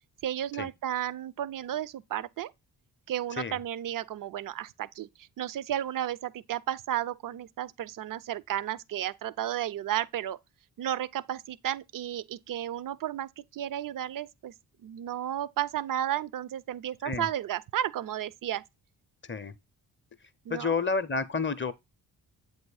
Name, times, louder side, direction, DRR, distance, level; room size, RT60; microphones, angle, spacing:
voice 1, 0.2-2.5 3.1-10.4 10.8-14.5 14.8-18.6 20.5-20.8, right 11 dB, 45° right, 0.4 m, -33 dB
voice 2, 19.2-19.5 20.5-21.7, left 4 dB, 25° left, 0.6 m, -30 dB
7.8 x 2.7 x 4.7 m
supercardioid pair, 45°, 47 cm